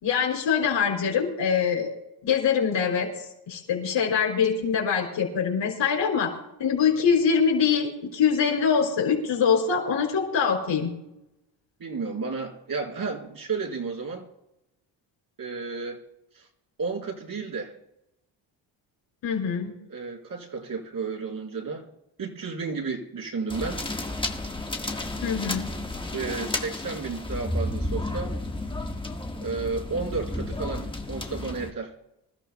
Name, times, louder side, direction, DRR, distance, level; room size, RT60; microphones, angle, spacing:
voice 1, 0.0-1.9 2.2-3.1 3.5-6.3 6.6-10.9 19.2-19.7 25.2-25.7, left 6 dB, 70° left, 0 dB, 4.8 m, -24 dB
voice 2, 11.8-14.2 15.4-16.0 16.4-16.5 16.8-17.7 19.9-21.9 22.2-23.8 26.1-28.3 29.4-31.9, right 4 dB, 45° right, -1 dB, 3.8 m, -32 dB
sound 1, 23.5-31.7, left 1 dB, 10° left, 1.4 m, -32 dB
25.5 x 13.5 x 2.2 m, 0.87 s
supercardioid pair, 75°, 45 cm